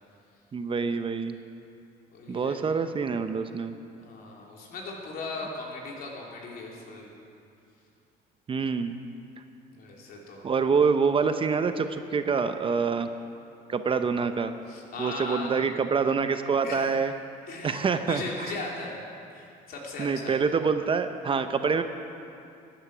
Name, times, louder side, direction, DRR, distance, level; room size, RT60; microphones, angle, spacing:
voice 1, 0.5-1.4 2.3-3.7 8.5-9.0 10.4-13.1 13.7-14.5 15.0-17.1 17.6-18.5 20.0-21.8, right 5 dB, 30° right, 9 dB, 0.7 m, -26 dB
voice 2, 2.1-2.6 4.0-7.1 9.7-10.4 14.7-15.5 16.6-16.9 17.5-19.0 19.3-20.3, left 3 dB, 65° left, -2 dB, 3.0 m, -38 dB
14.5 x 10.0 x 6.1 m, 2.6 s
cardioid pair, 110°, 17 cm